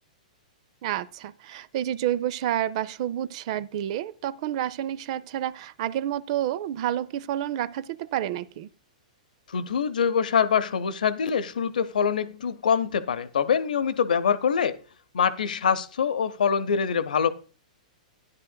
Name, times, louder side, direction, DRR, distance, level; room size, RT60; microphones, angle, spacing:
voice 1, 0.8-8.7, right 12 dB, 50° right, 0.4 m, -29 dB
voice 2, 9.5-14.8 15.1-17.3, left 7 dB, 85° left, 0.7 m, -24 dB
12.5 x 10.5 x 2.2 m
hypercardioid pair, 135°, 4 cm